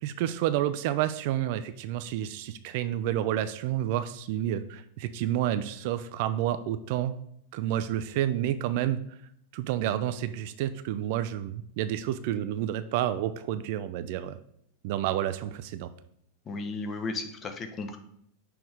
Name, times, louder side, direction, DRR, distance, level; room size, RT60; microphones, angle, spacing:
voice 1, 0.0-7.1 7.5-9.0 9.5-14.4 14.8-15.9, right 12 dB, 50° right, 12 dB, 0.3 m, -29 dB
voice 2, 16.5-18.0, left 3 dB, 25° left, 6 dB, 0.7 m, -34 dB
6.2 x 3.4 x 4.9 m, 0.71 s
figure-of-eight pair, 90°, 0 cm